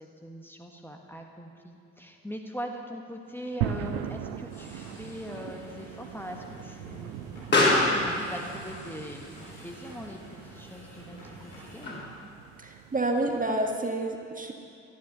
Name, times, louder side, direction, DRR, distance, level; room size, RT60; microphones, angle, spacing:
voice 1, 0.0-7.1 8.0-12.1, equal, 5° left, 2 dB, 1.7 m, -41 dB
Explosion, 3.3-12.3, left 2 dB, 30° left, 4.1 m, -32 dB
sound 1, 3.6-13.8, right 10 dB, 65° right, 0.6 m, -40 dB
sound 2, 4.5-11.9, equal, 75° left, 4.3 m, -49 dB
voice 2, 12.6-14.5, right 2 dB, 20° right, 2 dB, 1.7 m, -29 dB
13.5 x 10.5 x 6.9 m, 2.4 s
figure-of-eight pair, 45°, 37 cm